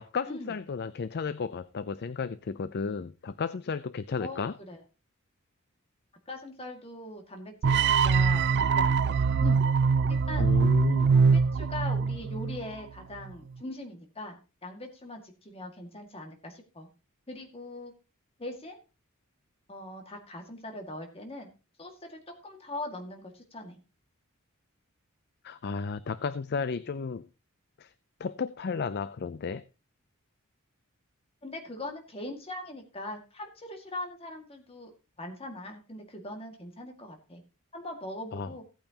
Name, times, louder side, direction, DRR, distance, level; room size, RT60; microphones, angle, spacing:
voice 1, 0.0-4.5 10.4-11.1 25.4-27.3 27.8-27.9 28.2-29.6 38.3-38.5, left 5 dB, 50° left, 0.5 m, -33 dB
voice 2, 4.2-4.8 6.3-9.7 10.1-10.5 11.1-16.9 17.3-17.9 18.4-18.8 19.7-21.5 21.8-23.8 31.4-34.9 35.2-37.4 37.7-38.6, left 1 dB, 25° left, 2.0 m, -41 dB
sound 1, 7.6-12.7, right 5 dB, 55° right, 0.4 m, -23 dB
17.0 x 8.7 x 2.9 m
head